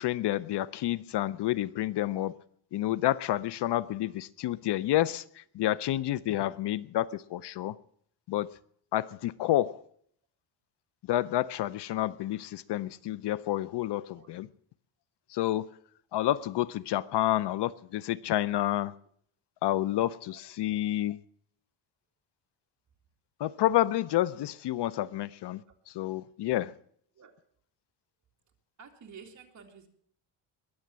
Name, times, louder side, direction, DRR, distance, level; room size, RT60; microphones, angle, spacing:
voice 1, 0.0-2.4 2.7-7.8 8.3-8.5 8.9-9.8 11.1-14.5 15.3-15.7 16.1-18.9 19.6-21.2 23.4-26.7, left 14 dB, 60° left, 0.6 m, -29 dB
voice 2, 20.3-20.8 27.1-27.3 28.8-29.9, right 6 dB, 35° right, 2.7 m, -51 dB
21.5 x 7.9 x 7.3 m
cardioid pair, 135°, 48 cm